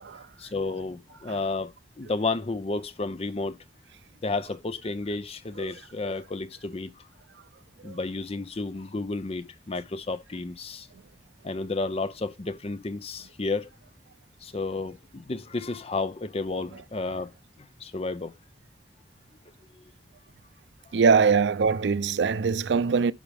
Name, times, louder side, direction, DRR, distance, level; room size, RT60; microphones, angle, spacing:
voice 1, 0.4-3.6 4.2-7.1 7.8-10.9 11.4-13.7 14.4-17.3 17.8-18.3 19.7-19.8, left 3 dB, 35° left, 0.6 m, -32 dB
voice 2, 20.9-23.1, right 5 dB, 85° right, 0.5 m, -22 dB
10.0 x 5.1 x 3.4 m
head